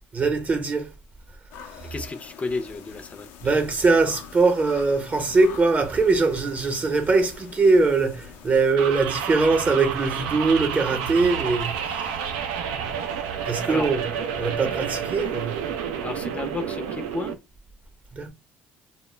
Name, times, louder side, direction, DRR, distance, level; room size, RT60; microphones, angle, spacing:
voice 1, 0.1-0.9 1.8-2.0 3.4-12.2 13.4-15.7 18.1-18.3, right 3 dB, 35° right, 0.8 m, -22 dB
sound 1, 1.5-8.8, left 7 dB, 80° left, 0.5 m, -44 dB
voice 2, 1.9-3.3 13.7-13.9 16.0-17.3, left 3 dB, 30° left, 0.5 m, -32 dB
sound 2, 8.8-17.3, right 7 dB, 85° right, 0.4 m, -30 dB
2.1 x 2.0 x 3.1 m
supercardioid pair, 65°, 5 cm